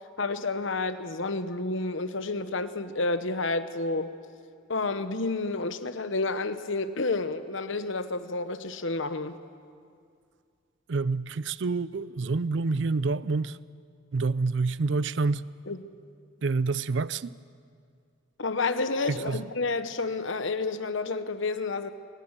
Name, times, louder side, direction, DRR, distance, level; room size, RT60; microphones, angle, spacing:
voice 1, 0.2-4.1 4.7-9.4 15.7-15.8 18.4-21.9, left 3 dB, 65° left, 1.0 m, -30 dB
voice 2, 10.9-13.6 14.1-15.5 16.4-17.4 19.1-19.5, right 4 dB, 55° right, 0.5 m, -28 dB
23.5 x 21.0 x 7.4 m
head